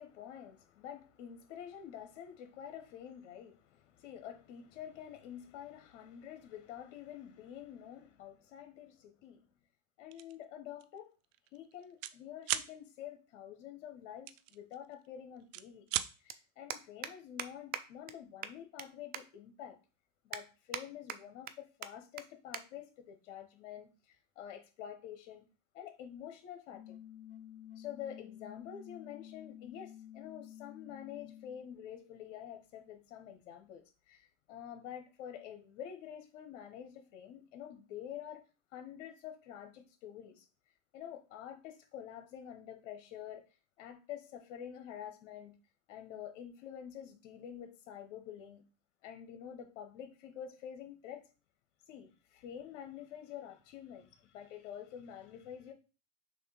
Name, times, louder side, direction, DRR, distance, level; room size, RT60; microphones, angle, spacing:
voice 1, 0.0-9.4 10.0-11.1 11.5-15.9 16.2-19.8 20.2-25.5 25.7-27.0 27.8-38.4 38.7-40.5 40.9-43.4 43.8-45.5 45.9-48.6 49.0-51.2 51.9-55.7, left 9 dB, 75° left, 1.0 m, -48 dB
sound 1, 10.1-10.4 10.8-11.0 11.2-12.2 12.4-12.7 14.3-15.1 15.4-16.1, right 14 dB, 80° right, 0.5 m, -36 dB
sound 2, 14.0-14.1 15.5-15.6 15.8-16.0 16.3-16.4 16.7-17.1 17.4-17.5 17.7-17.8 18.1-18.2 18.4-18.9 19.1-19.2 19.7-19.8 20.3-20.8 21.1-21.5 21.8-21.9 22.2-22.3 22.5-22.6 23.0-23.2 24.0-24.2, right 9 dB, 25° right, 0.3 m, -40 dB
sound 3, 26.7-31.7, left 11 dB, 20° left, 0.6 m, -51 dB
6.3 x 2.5 x 3.3 m
supercardioid pair, 110°, 37 cm